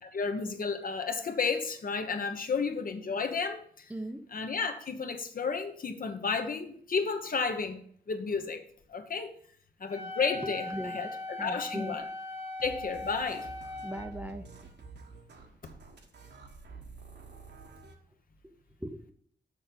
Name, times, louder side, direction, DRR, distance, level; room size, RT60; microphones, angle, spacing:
voice 1, 0.0-3.9 4.3-8.6 8.9-9.3 9.8-12.1 12.6-13.5, left 5 dB, 45° left, 1.1 m, -32 dB
voice 2, 3.9-4.2 10.7-11.0 11.4-12.0 13.8-14.4 18.8-19.1, equal, 10° right, 0.8 m, -38 dB
Wind instrument woodwind instrument, 9.9-14.1, left 2 dB, 30° left, 1.4 m, -39 dB
sound 1, 12.6-18.0, right 4 dB, 60° right, 1.5 m, -49 dB
6.7 x 6.5 x 7.6 m
wide cardioid pair, 135°, 19 cm